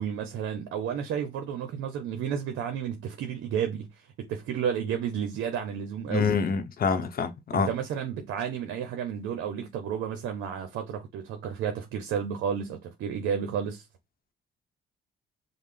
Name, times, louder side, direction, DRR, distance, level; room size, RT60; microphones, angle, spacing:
voice 1, 0.0-6.4 7.5-13.8, right 8 dB, 90° right, 0.6 m, -32 dB
voice 2, 6.1-7.7, left 5 dB, 50° left, 0.8 m, -26 dB
5.5 x 2.1 x 3.3 m
cardioid pair, 90°, 20 cm